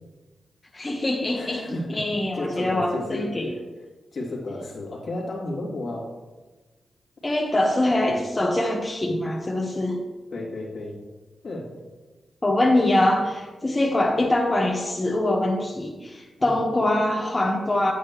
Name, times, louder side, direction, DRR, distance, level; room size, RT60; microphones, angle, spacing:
voice 1, 0.7-3.5 7.2-10.0 12.4-17.9, left 1 dB, 30° left, -1 dB, 1.4 m, -23 dB
voice 2, 1.3-3.6 4.1-6.1 10.3-11.0 11.4-11.7 16.4-16.6, left 2 dB, 65° left, -3 dB, 2.8 m, -33 dB
9.5 x 8.7 x 3.2 m, 1.2 s
supercardioid pair, 45°, 0 cm